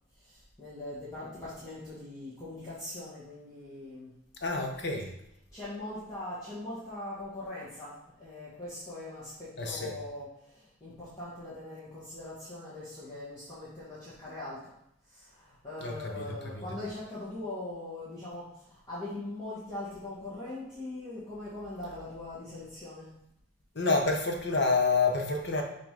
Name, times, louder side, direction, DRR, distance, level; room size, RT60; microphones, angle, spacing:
voice 1, 0.1-4.1 5.5-14.7 15.1-23.1, left 2 dB, 20° left, -11 dB, 1.5 m, -41 dB
voice 2, 4.4-5.1 9.6-9.9 15.8-16.6 23.7-25.6, left 3 dB, 55° left, 2 dB, 1.0 m, -28 dB
6.0 x 3.0 x 5.2 m, 0.78 s
head